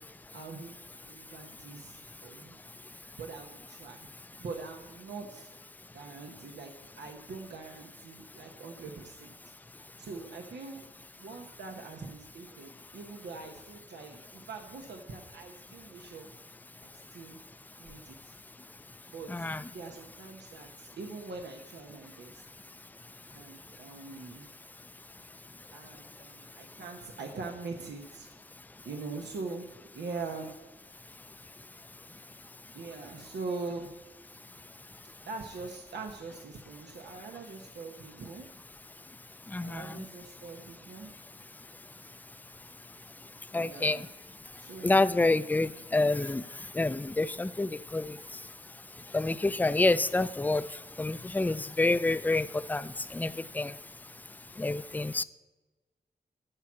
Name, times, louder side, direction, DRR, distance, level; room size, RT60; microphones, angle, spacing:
voice 1, 0.3-2.6 3.2-4.1 4.4-5.5 5.9-9.3 10.0-10.8 11.2-16.3 16.8-17.4 17.8-18.3 19.1-19.5 19.7-22.4 23.3-24.5 25.7-28.3 28.8-30.6 32.7-34.0 35.3-38.5 39.6-41.1 43.6-44.1 44.6-45.0, right 4 dB, 90° right, 2 dB, 1.0 m, -43 dB
voice 2, 19.3-19.6 39.5-39.9 43.5-44.0 44.8-46.4 46.8-48.1 49.1-50.6 51.0-53.7 54.6-55.2, left 2 dB, 10° left, 15 dB, 0.4 m, -28 dB
13.5 x 4.7 x 7.2 m, 1.2 s
cardioid pair, 55°, 17 cm